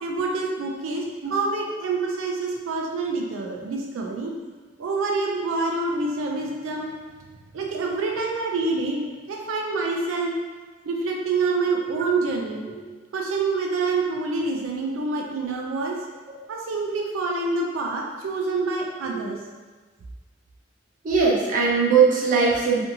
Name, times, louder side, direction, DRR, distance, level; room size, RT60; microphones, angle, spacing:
voice 1, 0.0-1.0 1.3-4.3 4.8-6.9 7.5-10.3 10.8-12.7 13.1-16.0 16.5-19.4, right 3 dB, 90° right, 0 dB, 0.4 m, -27 dB
voice 2, 21.0-22.8, right 5 dB, 40° right, -4 dB, 0.5 m, -20 dB
2.6 x 2.6 x 2.6 m, 1.4 s
head